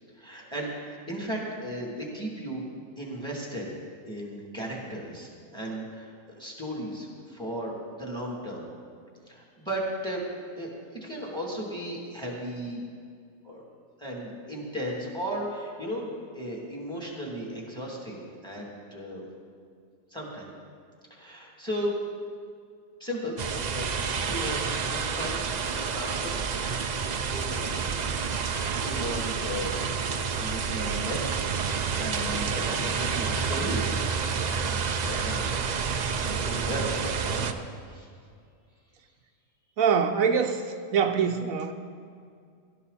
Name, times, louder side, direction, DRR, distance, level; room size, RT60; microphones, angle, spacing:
voice 1, 0.2-2.6 3.0-3.7 4.1-8.7 9.3-10.2 10.6-12.8 13.4-13.6 14.0-18.6 18.9-19.3 20.1-20.5 21.1-22.0 23.0-23.3 23.6-26.4 26.9-27.9 28.4-29.7 30.4-31.2 31.6-33.9 34.4-35.4 36.3-37.5 37.8-38.1, equal, 5° left, -3 dB, 2.8 m, -36 dB
sound 1, 23.4-37.5, right 6 dB, 50° right, 0.5 m, -29 dB
voice 2, 39.8-40.6 40.9-41.7, right 6 dB, 85° right, 6 dB, 1.2 m, -23 dB
18.0 x 12.5 x 4.2 m, 2.2 s
omnidirectional pair, 1.4 m